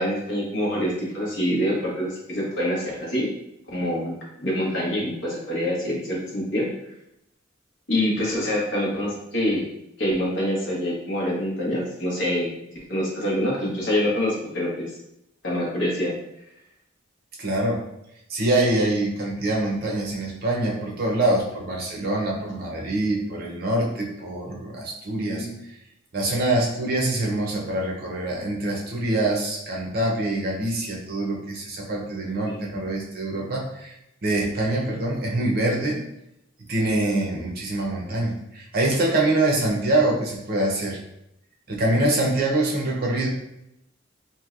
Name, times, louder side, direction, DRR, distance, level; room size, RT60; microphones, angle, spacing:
voice 1, 0.0-3.3 3.7-4.1 4.4-6.7 7.9-9.6 10.0-12.5 12.9-14.9 15.4-16.1 25.1-25.6 32.5-32.9, equal, 65° left, -5 dB, 1.1 m, -26 dB
voice 2, 17.4-17.8 18.3-25.5 26.1-33.9 34.2-36.0 36.7-41.0 41.7-43.3, right 2 dB, 50° right, -2 dB, 0.7 m, -24 dB
3.1 x 2.6 x 2.4 m, 0.82 s
head